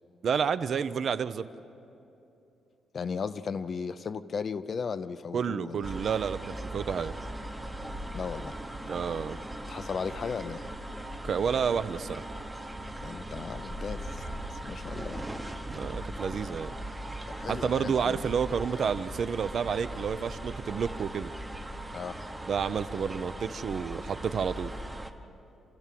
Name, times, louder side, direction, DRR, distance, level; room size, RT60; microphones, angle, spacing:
voice 1, 0.2-1.4 5.3-7.1 8.9-9.4 11.2-12.2 15.7-16.7 17.5-21.3 22.5-24.7, right 6 dB, 45° right, 13 dB, 0.5 m, -30 dB
voice 2, 2.9-6.0 8.1-8.6 9.7-10.6 13.0-14.2 14.5-15.3 17.3-18.2 21.9-22.2, left 5 dB, 35° left, 13 dB, 0.5 m, -36 dB
sound 1, 5.8-25.1, right 1 dB, 10° right, 0.9 m, -39 dB
28.5 x 14.0 x 7.6 m, 2.8 s
cardioid pair, 175°, 0 cm